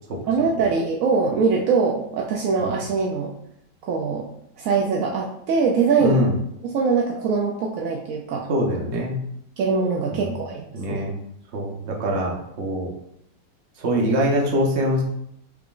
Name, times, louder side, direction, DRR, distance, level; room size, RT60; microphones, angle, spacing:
voice 1, 0.3-3.3 3.8-4.2 4.6-6.2 6.6-8.5 9.6-11.0, right 5 dB, 75° right, -1 dB, 0.7 m, -22 dB
voice 2, 6.0-6.3 8.5-9.2 10.1-10.4 10.7-11.1 11.5-12.9 13.8-15.0, equal, 50° right, -1 dB, 0.9 m, -23 dB
4.6 x 3.6 x 2.4 m, 0.73 s
omnidirectional pair, 1.9 m